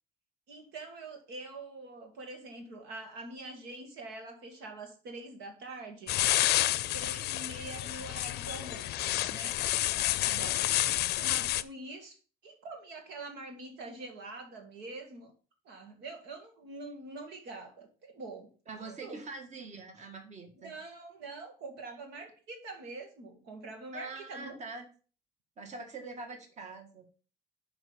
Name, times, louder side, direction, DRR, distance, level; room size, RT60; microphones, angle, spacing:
voice 1, 0.5-6.2 6.9-12.2 12.4-15.3 15.7-19.2 20.6-24.6, right 2 dB, 85° right, 2.1 m, -45 dB
sound 1, 6.1-11.6, left 15 dB, 75° left, 0.5 m, -29 dB
voice 2, 10.2-10.6 18.7-20.7 23.9-24.9 25.6-27.0, right 3 dB, 45° right, 1.9 m, -44 dB
6.1 x 5.4 x 7.0 m
cardioid pair, 110°, 17 cm